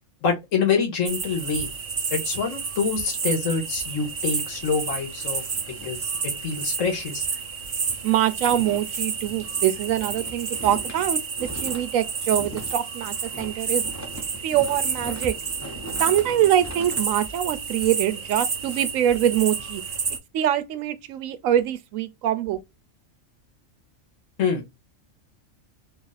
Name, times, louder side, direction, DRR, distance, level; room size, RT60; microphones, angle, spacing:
voice 1, 0.2-1.7 2.1-5.4 5.8-7.3 24.4-24.7, left 5 dB, 75° left, 1.4 m, -26 dB
sound 1, 1.1-20.2, right 5 dB, 45° right, 0.5 m, -30 dB
sound 2, 4.5-6.8 7.1-7.3 7.6-18.8, equal, 15° left, 0.6 m, -41 dB
voice 2, 8.0-11.2 11.6-13.8 14.4-15.4 16.0-19.8 20.3-22.6, right 11 dB, 90° right, 1.0 m, -24 dB
3.0 x 2.5 x 4.0 m
omnidirectional pair, 1.3 m